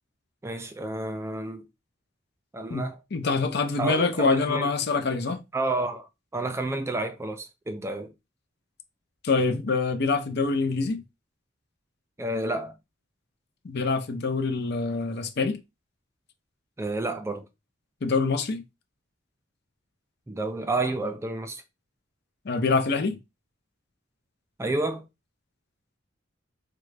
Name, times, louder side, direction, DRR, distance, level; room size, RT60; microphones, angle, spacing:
voice 1, 0.4-1.6 2.5-3.0 3.8-4.7 5.5-8.1 12.2-12.8 16.8-17.5 20.3-21.6 24.6-25.1, right 2 dB, 15° right, 0.3 m, -30 dB
voice 2, 3.1-5.4 9.2-11.0 13.6-15.6 18.0-18.6 22.4-23.2, left 4 dB, 55° left, 0.6 m, -25 dB
3.7 x 2.2 x 3.2 m
head